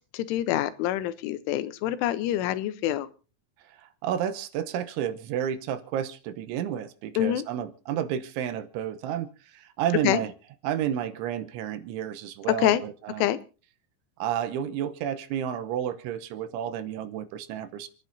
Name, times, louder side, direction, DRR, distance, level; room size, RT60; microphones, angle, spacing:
voice 1, 0.1-3.1 7.2-7.4 10.0-10.2 12.6-12.8 13.2-13.4, left 13 dB, 80° left, 13 dB, 3.4 m, -26 dB
voice 2, 3.6-10.3 10.6-13.3 14.2-17.9, right 10 dB, 80° right, 10 dB, 3.3 m, -31 dB
29.5 x 10.5 x 2.7 m, 0.34 s
omnidirectional pair, 5.6 m